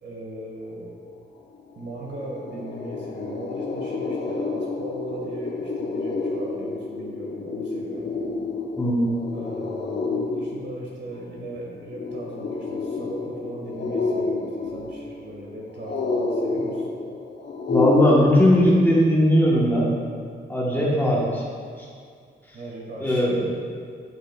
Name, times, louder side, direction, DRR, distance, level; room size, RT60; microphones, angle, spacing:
voice 1, 0.0-0.9 1.7-8.2 9.3-16.9 22.5-23.5, right 1 dB, 65° right, -4 dB, 1.6 m, -38 dB
sound 1, 1.5-1.6 1.9-18.1, left 3 dB, 70° left, 0.7 m, -29 dB
voice 2, 8.8-9.1 17.7-19.9 20.5-21.4 21.8-21.9 23.0-23.5, equal, 10° left, -6 dB, 1.1 m, -19 dB
9.2 x 5.9 x 2.3 m, 2.2 s
wide cardioid pair, 150°, 19 cm